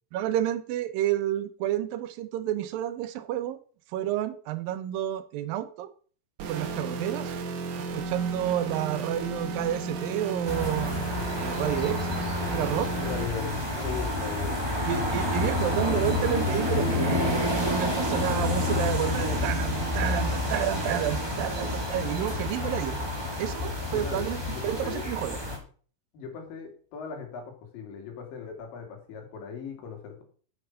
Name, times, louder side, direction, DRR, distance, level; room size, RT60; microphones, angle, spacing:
voice 1, 0.1-3.6 3.9-5.9 6.5-7.4 7.8-12.1 12.5-12.9 14.8-23.0 23.4-25.4, right 12 dB, 85° right, 11 dB, 2.5 m, -30 dB
sound 1, 6.4-13.3, right 3 dB, 65° right, 2.3 m, -34 dB
sound 2, 10.5-25.6, left 1 dB, 10° right, 1.7 m, -29 dB
voice 2, 13.0-14.6 23.9-25.1 26.1-27.4 27.7-30.2, left 6 dB, 75° left, 3 dB, 3.8 m, -38 dB
7.8 x 7.2 x 5.6 m, 0.43 s
omnidirectional pair, 4.0 m